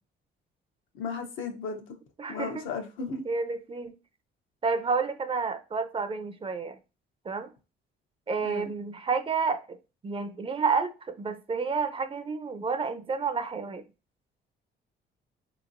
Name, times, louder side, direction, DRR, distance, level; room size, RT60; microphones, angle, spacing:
voice 1, 0.9-1.9 2.3-3.2 8.4-8.7, left 4 dB, 90° left, 0.7 m, -35 dB
voice 2, 2.2-2.7 3.3-3.9 4.6-6.8 7.2-7.5 8.3-9.8 10.0-13.8, right 5 dB, 25° right, 0.4 m, -30 dB
3.8 x 2.9 x 2.5 m
cardioid pair, 90°, 20 cm